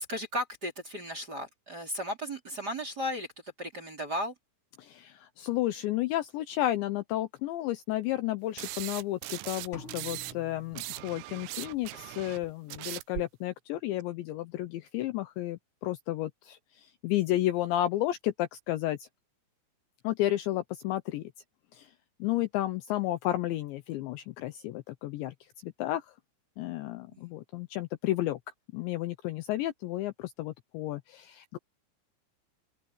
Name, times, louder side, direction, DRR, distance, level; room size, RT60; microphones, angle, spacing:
voice 1, 0.0-3.3 3.6-4.3 27.1-27.3, equal, 25° right, 3.0 m, -35 dB
voice 2, 4.8-19.1 20.0-21.2 21.7-21.9 22.2-25.3 25.6-26.1 26.6-28.4 28.7-31.6, left 15 dB, 75° left, 2.8 m, -32 dB
sound 1, 8.6-10.3 10.6-13.2, right 18 dB, 90° right, 3.3 m, -39 dB
sound 2, 9.7-11.7, left 1 dB, 25° left, 5.4 m, -49 dB
open air
omnidirectional pair, 5.9 m